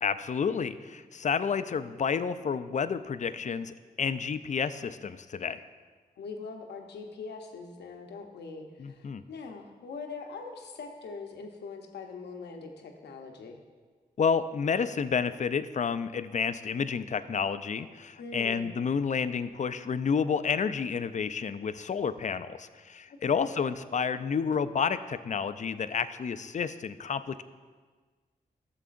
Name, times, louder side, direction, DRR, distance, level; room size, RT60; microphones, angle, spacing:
voice 1, 0.0-5.6 8.8-9.2 14.2-27.4, left 6 dB, 45° left, 13 dB, 0.4 m, -30 dB
voice 2, 6.2-13.6 18.2-18.7 23.3-23.5, left 4 dB, 85° left, 3 dB, 0.8 m, -42 dB
12.5 x 6.8 x 2.5 m, 1.4 s
supercardioid pair, 45°, 17 cm